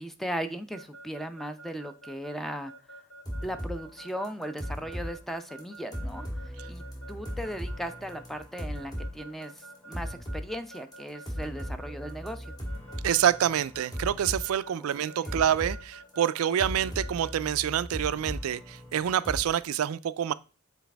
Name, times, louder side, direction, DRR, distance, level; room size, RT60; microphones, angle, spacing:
voice 1, 0.0-2.7 3.4-12.5 15.2-15.4, equal, ahead, 0.4 m, -37 dB
Keyboard (musical) / Alarm, 0.7-17.3, right 2 dB, 60° left, 2.1 m, -48 dB
sound 1, 3.2-3.8 4.1-5.1 5.4-5.6 5.9-9.1 9.4-10.5 10.9-11.0 11.3-14.5 14.7-15.8 16.2-19.4, equal, 20° left, 1.8 m, -37 dB
voice 2, 13.0-20.3, right 10 dB, 85° right, 0.3 m, -27 dB
7.2 x 4.1 x 3.4 m
head